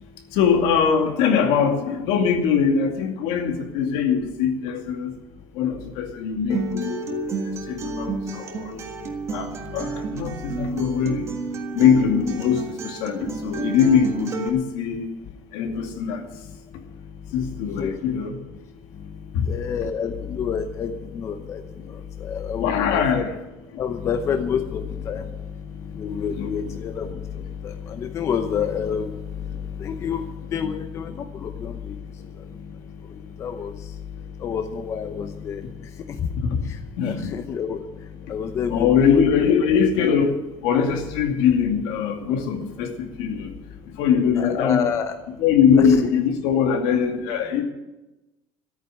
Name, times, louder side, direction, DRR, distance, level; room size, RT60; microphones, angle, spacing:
voice 1, 0.3-5.1 5.6-7.3 7.7-8.8 9.3-11.2 11.7-15.1 15.5-16.3 17.3-18.4 19.3-19.4 22.6-23.4 26.4-26.7 27.0-27.2 37.0-37.3 38.7-40.4 40.6-43.5 44.0-45.0 45.4-47.6, left 7 dB, 70° left, 4 dB, 2.4 m, -22 dB
Acoustic guitar, 6.5-14.5, right 4 dB, 30° right, 1.6 m, -31 dB
voice 2, 18.9-23.2 23.8-34.0 34.4-36.3 36.7-38.9 44.4-45.1, left 7 dB, 30° left, 8 dB, 0.8 m, -29 dB
14.0 x 9.1 x 8.9 m, 1.0 s
cardioid pair, 170°, 9 cm